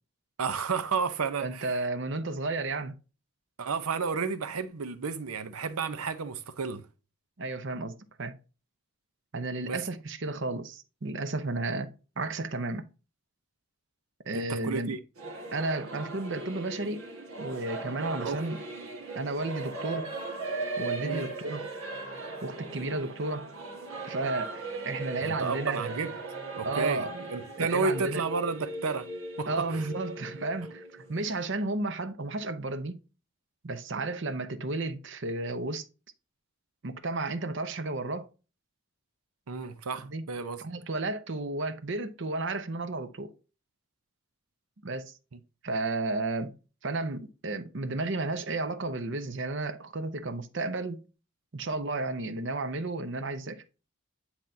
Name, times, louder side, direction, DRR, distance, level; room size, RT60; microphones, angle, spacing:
voice 1, 0.4-1.7 3.6-6.9 9.7-9.8 14.3-15.0 18.2-18.4 21.0-21.3 25.2-26.2 26.6-29.1 29.4-29.9 39.5-40.6 45.3-45.4, right 5 dB, 85° right, 0.7 m, -32 dB
voice 2, 1.4-3.0 7.4-8.4 9.3-11.9 12.2-12.9 14.3-14.9 15.5-17.1 17.4-18.6 19.1-20.1 20.8-21.7 22.4-23.5 24.0-25.9 26.6-27.2 27.6-28.2 29.5-33.0 33.6-35.8 36.8-38.3 40.0-40.3 40.6-43.3 44.8-45.2 45.6-46.5 46.8-51.0 51.5-53.6, right 2 dB, 55° right, 0.7 m, -33 dB
Singing / Musical instrument, 15.2-31.5, right 3 dB, 70° right, 1.6 m, -38 dB
9.7 x 4.4 x 2.7 m
head